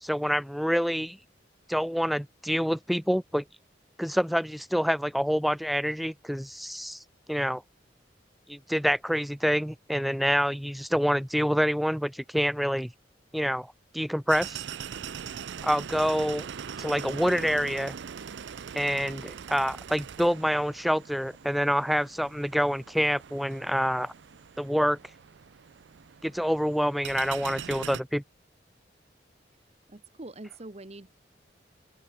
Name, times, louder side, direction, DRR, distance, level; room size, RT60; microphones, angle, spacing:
voice 1, 0.0-1.2 1.7-3.4 4.0-7.0 7.3-7.6 8.5-12.9 13.3-14.6 15.6-16.5 16.8-18.0 18.7-24.1 24.6-25.0 26.2-28.2, equal, ahead, 0.4 m, -27 dB
sound 1, 14.3-28.0, right 7 dB, 70° right, 0.5 m, -41 dB
voice 2, 29.6-31.1, right 2 dB, 35° right, 1.2 m, -44 dB
open air
head